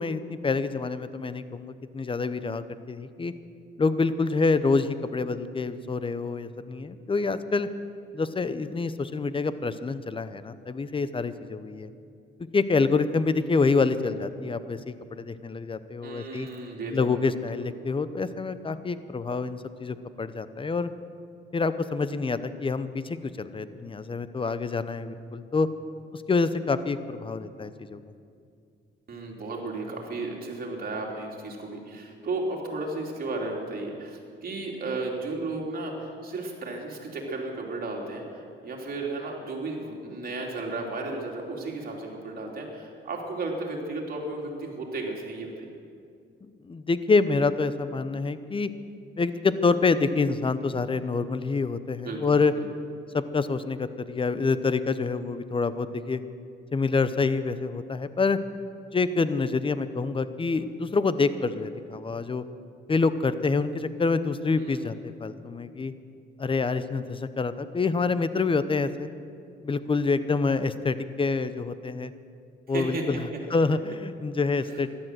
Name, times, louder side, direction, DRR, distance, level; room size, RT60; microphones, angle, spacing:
voice 1, 0.0-3.3 3.8-7.7 8.1-11.9 12.5-16.5 16.9-20.9 21.5-25.7 26.1-28.0 46.4-48.7 49.2-52.5 53.1-56.2 56.7-58.4 58.9-62.4 62.9-65.9 66.4-69.1 69.6-72.1 72.7-74.9, left 4 dB, 25° left, 13 dB, 0.8 m, -27 dB
voice 2, 16.0-17.1 29.1-45.7 52.0-52.6 64.6-64.9 72.7-73.0, right 2 dB, 50° right, -1 dB, 3.3 m, -34 dB
14.5 x 11.5 x 7.7 m, 2.4 s
cardioid pair, 90°, 20 cm